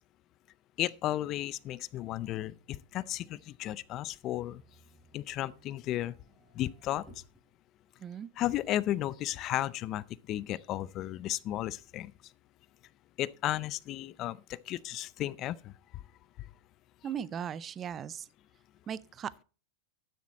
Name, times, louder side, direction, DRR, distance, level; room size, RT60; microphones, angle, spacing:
voice 1, 0.8-4.6 5.1-6.1 6.5-7.0 8.4-12.1 13.2-15.7, left 14 dB, 40° left, 0.5 m, -34 dB
Motor vehicle (road), 4.3-7.5 8.0-8.1 8.4-9.8 10.6-10.7, equal, 5° right, 3.6 m, -58 dB
voice 2, 17.0-18.3 18.9-19.4, right 8 dB, 25° right, 0.5 m, -38 dB
12.5 x 7.3 x 4.1 m
hypercardioid pair, 130°, 0 cm